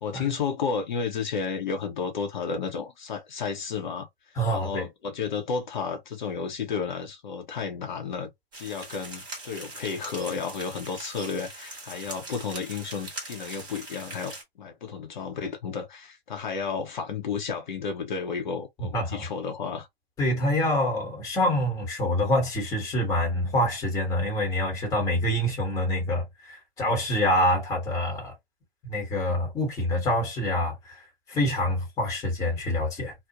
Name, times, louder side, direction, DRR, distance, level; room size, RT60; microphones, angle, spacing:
voice 1, 0.0-4.1 4.5-19.9, left 5 dB, 50° left, 0.7 m, -32 dB
voice 2, 4.4-4.9 18.8-19.2 20.2-28.3 28.9-30.9 31.3-33.1, left 1 dB, 10° left, 1.0 m, -26 dB
sound 1, 8.5-14.4, right 2 dB, 15° right, 0.9 m, -41 dB
2.5 x 2.1 x 2.7 m
figure-of-eight pair, 130°, 31 cm